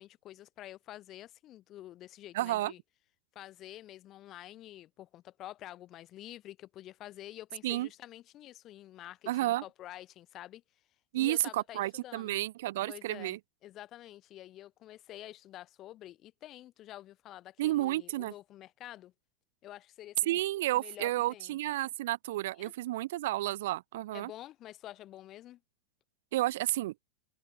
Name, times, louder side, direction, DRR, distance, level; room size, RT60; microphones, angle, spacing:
voice 1, 0.0-2.8 3.3-10.6 11.1-12.4 12.9-19.1 19.6-20.4 20.7-21.6 22.6-22.7 24.1-25.6, left 14 dB, 35° left, 1.4 m, -48 dB
voice 2, 2.3-2.7 7.6-7.9 9.3-9.6 11.1-13.4 17.6-18.3 20.2-24.3 26.3-26.9, right 16 dB, 60° right, 0.9 m, -31 dB
open air
figure-of-eight pair, 90°, 0 cm